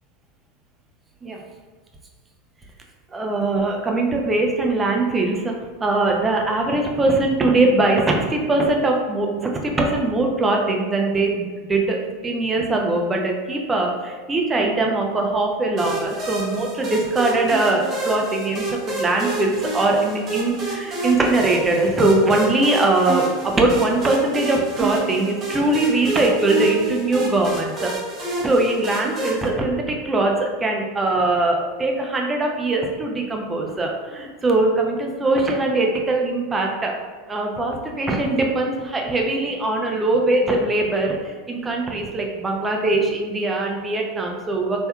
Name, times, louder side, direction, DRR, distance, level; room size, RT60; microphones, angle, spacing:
voice 1, 3.1-5.5 5.8-27.9 28.4-36.9 37.3-44.9, right 2 dB, 20° right, 0 dB, 0.7 m, -21 dB
sound 1, 15.8-29.5, right 2 dB, 35° right, 1.0 m, -29 dB
4.4 x 3.2 x 2.3 m, 1.5 s
figure-of-eight pair, 85°, 0 cm